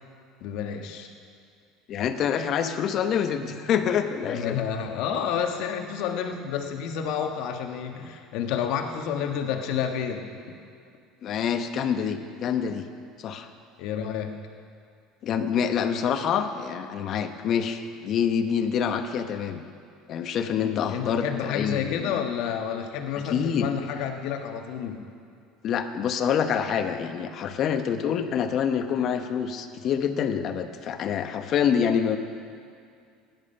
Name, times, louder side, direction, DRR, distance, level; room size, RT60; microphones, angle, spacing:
voice 1, 0.4-1.1 4.3-10.2 13.8-14.3 20.6-25.0, left 8 dB, 70° left, 4 dB, 1.4 m, -30 dB
voice 2, 1.9-4.6 11.2-12.9 13.2-13.5 15.2-19.7 20.1-22.1 23.2-23.7 25.6-32.2, left 7 dB, 50° left, 8 dB, 1.0 m, -26 dB
16.5 x 11.0 x 5.5 m, 2.3 s
supercardioid pair, 90°, 0 cm